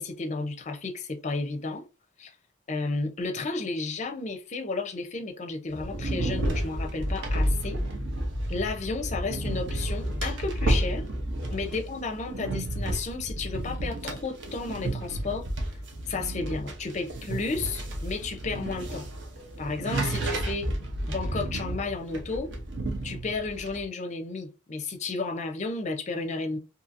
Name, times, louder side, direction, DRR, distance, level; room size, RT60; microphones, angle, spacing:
voice 1, 0.0-1.8 2.2-2.3 2.7-7.8 8.5-11.1 11.5-15.5 16.1-19.0 19.6-20.7 21.1-22.5 23.0-26.6, left 3 dB, 35° left, 0.5 m, -32 dB
sound 1, 5.7-23.8, right 1 dB, 60° right, 0.7 m, -31 dB
2.7 x 2.6 x 2.5 m
head